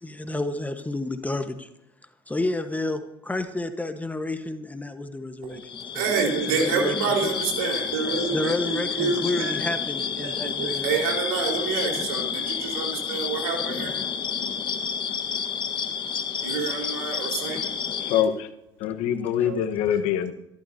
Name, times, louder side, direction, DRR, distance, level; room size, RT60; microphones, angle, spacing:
voice 1, 0.0-1.7 2.3-6.1 6.5-6.9 7.2-7.3 8.3-11.0 19.4-19.5, left 2 dB, 10° left, 7 dB, 1.4 m, -30 dB
sound 1, 5.6-18.2, left 6 dB, 40° left, 1.5 m, -30 dB
voice 2, 5.9-9.5 10.2-13.9 16.4-17.6 19.4-19.6, right 5 dB, 75° right, 1 dB, 4.5 m, -28 dB
voice 3, 18.0-18.5 18.8-20.3, left 9 dB, 65° left, 9 dB, 1.3 m, -24 dB
26.5 x 13.0 x 2.9 m, 0.85 s
hypercardioid pair, 65°, 12 cm